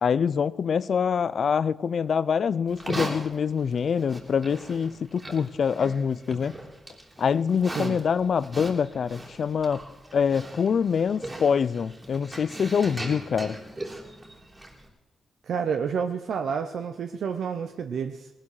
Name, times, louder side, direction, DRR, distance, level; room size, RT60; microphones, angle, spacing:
voice 1, 0.0-6.6 7.2-9.8 10.1-13.6, left 6 dB, 60° left, 19 dB, 0.5 m, -25 dB
Livestock farm animals working animals, 2.7-14.9, right 1 dB, 25° right, 3.2 m, -39 dB
voice 2, 15.4-18.3, right 6 dB, 70° right, 7 dB, 0.7 m, -29 dB
19.0 x 11.5 x 4.8 m, 1.1 s
supercardioid pair, 55°, 0 cm